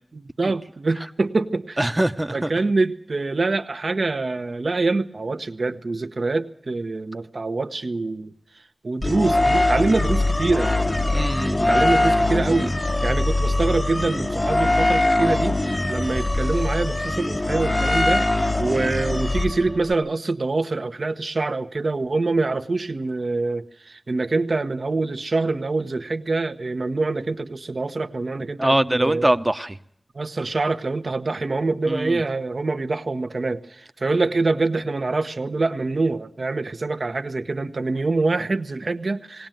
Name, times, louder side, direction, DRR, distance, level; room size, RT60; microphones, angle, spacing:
voice 1, 0.1-1.8 2.3-8.3 8.8-10.7 11.7-29.3 30.1-33.6 34.0-39.5, right 3 dB, 65° right, 8 dB, 1.0 m, -25 dB
voice 2, 1.8-2.5 11.1-11.9 28.6-29.8 31.9-32.2, right 1 dB, 25° right, 9 dB, 0.9 m, -23 dB
sound 1, 9.0-19.9, left 2 dB, 30° left, 0.8 m, -22 dB
19.5 x 17.5 x 9.1 m, 0.67 s
wide cardioid pair, 50°, 0 cm